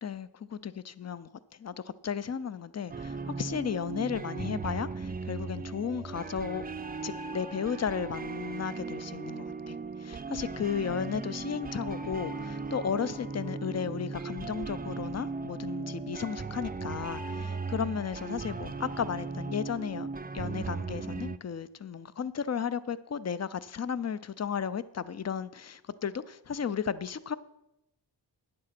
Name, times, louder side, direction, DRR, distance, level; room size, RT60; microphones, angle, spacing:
voice 1, 0.0-1.3 1.6-6.6 7.0-20.1 20.3-27.3, left 7 dB, 40° left, 0.5 m, -34 dB
sound 1, 2.9-21.4, right 4 dB, 20° right, 0.4 m, -37 dB
Alarm, 5.6-9.8 10.3-14.8 15.3-19.1, left 4 dB, 70° left, 1.2 m, -51 dB
9.5 x 7.7 x 5.9 m
cardioid pair, 55°, 43 cm